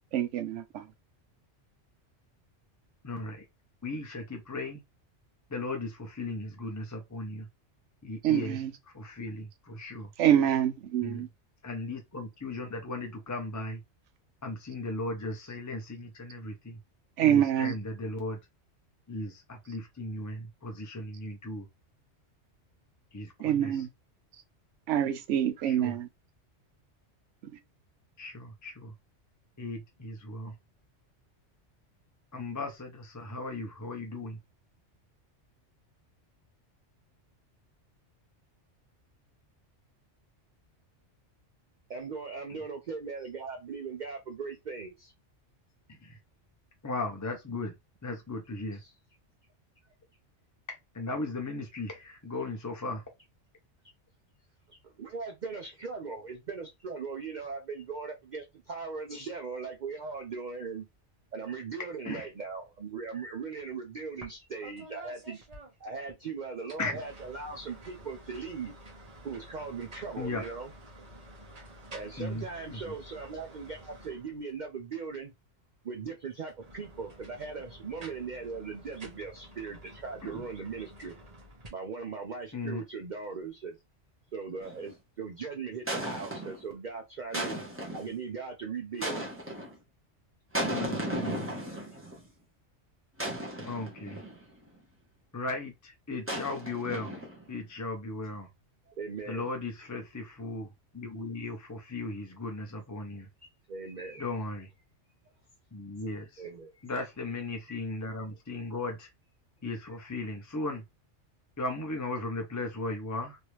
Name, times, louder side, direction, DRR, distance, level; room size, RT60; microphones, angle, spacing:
voice 1, 0.1-0.9 8.2-8.7 10.2-11.3 17.2-17.7 23.4-23.9 24.9-26.1, right 10 dB, 80° right, 0.9 m, -26 dB
voice 2, 3.0-3.4 3.8-4.8 5.5-7.5 8.0-8.6 8.9-10.1 11.0-11.2 11.6-13.8 14.4-16.8 17.2-18.4 19.1-21.7 23.1-23.8 25.7-25.9 28.2-28.9 29.6-30.5 32.3-34.4 45.9-46.2 46.8-47.7 48.0-48.8 50.7-53.0 62.0-62.3 66.8-67.0 70.2-70.4 72.2-72.4 72.7-72.9 80.2-80.4 82.5-82.8 90.7-91.5 93.6-94.2 95.3-97.2 97.5-98.5 99.3-103.3 104.2-104.7 105.7-106.4 106.8-109.1 109.6-110.8 111.6-113.4, left 2 dB, 25° left, 0.4 m, -37 dB
voice 3, 41.9-45.1 48.8-48.9 54.7-60.9 61.3-65.4 65.8-68.7 69.2-70.7 71.9-75.3 75.8-81.1 81.7-83.8 84.3-87.6 87.9-89.2 91.7-91.8 98.9-99.5 103.4-104.4 106.4-106.8 107.7-107.8, right 5 dB, 50° right, 0.6 m, -39 dB
sound 1, 64.2-64.4 64.6-66.2 66.6-74.6 76.4-81.7, right 1 dB, 35° right, 1.1 m, -50 dB
sound 2, 84.6-84.9 85.9-86.6 87.3-88.1 89.0-89.8 90.5-92.2 93.2-94.4 96.3-97.5, right 1 dB, 10° right, 0.9 m, -35 dB
3.1 x 2.7 x 3.0 m
omnidirectional pair, 1.2 m